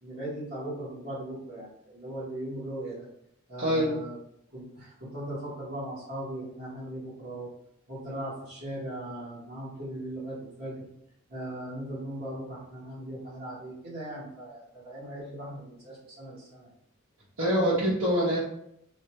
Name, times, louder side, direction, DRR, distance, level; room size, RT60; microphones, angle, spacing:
voice 1, 0.0-3.1 3.5-4.2 4.5-7.5 7.9-10.7 11.3-16.7, right 1 dB, 45° right, -9 dB, 1.3 m, -38 dB
voice 2, 3.6-3.9 17.4-18.4, equal, 70° right, -10 dB, 1.4 m, -24 dB
3.2 x 2.6 x 4.2 m, 0.73 s
head